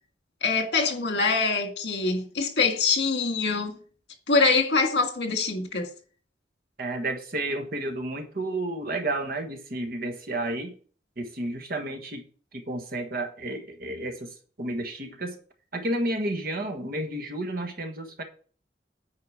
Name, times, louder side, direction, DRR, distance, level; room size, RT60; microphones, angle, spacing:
voice 1, 0.4-3.7 4.3-5.9, left 4 dB, 70° left, 1.9 m, -24 dB
voice 2, 6.8-10.7 11.2-12.2 12.5-15.4 15.7-18.2, right 1 dB, 55° right, 1.4 m, -31 dB
9.3 x 4.9 x 4.7 m
head